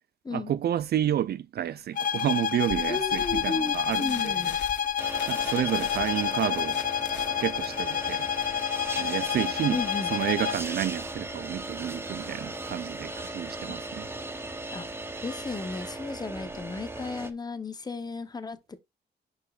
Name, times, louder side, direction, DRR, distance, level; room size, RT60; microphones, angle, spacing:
voice 1, 0.3-4.4 5.3-6.8 7.4-8.3 9.0-9.8 10.1-14.1, right 11 dB, 60° right, 0.4 m, -30 dB
sound 1, 1.9-10.7, left 8 dB, 50° left, 0.4 m, -29 dB
sound 2, 2.7-11.8, left 7 dB, 80° left, 1.5 m, -45 dB
voice 2, 2.9-4.6 9.7-10.1 14.7-14.9 15.2-18.8, left 4 dB, 20° left, 0.8 m, -34 dB
sound 3, 5.0-17.3, right 2 dB, 15° right, 0.9 m, -38 dB
11.0 x 5.0 x 2.4 m
wide cardioid pair, 130°, 18 cm